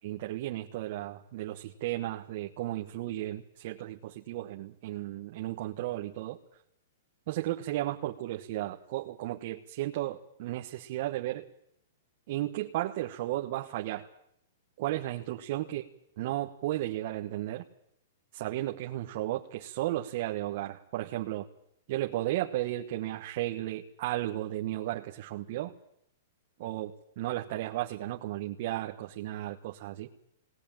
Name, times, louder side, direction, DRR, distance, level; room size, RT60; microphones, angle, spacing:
voice 1, 0.0-6.4 7.3-11.4 12.3-14.1 14.8-15.8 16.2-17.6 18.3-21.5 21.9-25.7 26.6-30.1, right 15 dB, 45° right, 1 dB, 1.3 m, -34 dB
19.5 x 19.5 x 9.0 m, 0.73 s
hypercardioid pair, 160°, 0 cm